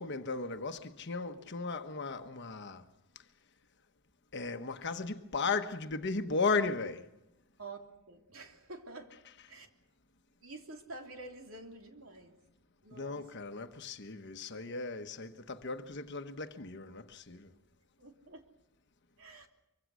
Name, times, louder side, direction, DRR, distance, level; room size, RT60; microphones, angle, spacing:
voice 1, 0.0-2.9 4.3-7.1 12.9-17.5, left 4 dB, 55° left, 1.2 m, -36 dB
voice 2, 8.1-9.2 9.5-9.7 10.4-12.4 12.8-13.3 18.0-18.4 19.2-19.5, right 2 dB, 75° right, 3.1 m, -48 dB
24.5 x 24.5 x 6.3 m
head